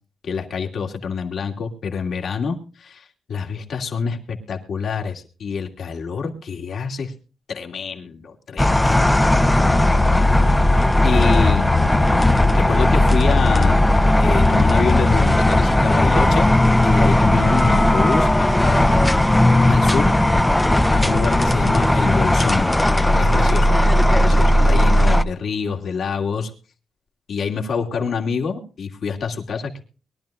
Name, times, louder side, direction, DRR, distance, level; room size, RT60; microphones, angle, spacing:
voice 1, 0.2-7.1 7.5-9.8 11.0-11.7 12.4-13.8 14.2-16.5 16.8-20.1 20.8-22.7 23.2-26.5 27.3-29.8, left 5 dB, 65° left, 2 dB, 2.8 m, -26 dB
sound 1, 8.6-25.2, left 1 dB, 10° left, 0.7 m, -16 dB
23.0 x 12.0 x 2.4 m, 0.36 s
cardioid pair, 110°, 0 cm